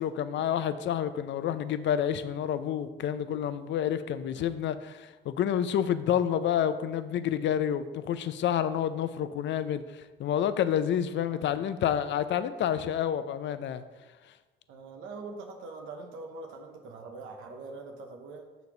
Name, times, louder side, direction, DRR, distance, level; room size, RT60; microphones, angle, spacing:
voice 1, 0.0-13.8, left 9 dB, 65° left, 12 dB, 0.5 m, -29 dB
voice 2, 11.2-11.6 14.7-18.5, right 3 dB, 85° right, 2 dB, 0.9 m, -43 dB
6.7 x 4.0 x 5.9 m, 1.2 s
cardioid pair, 90°, 20 cm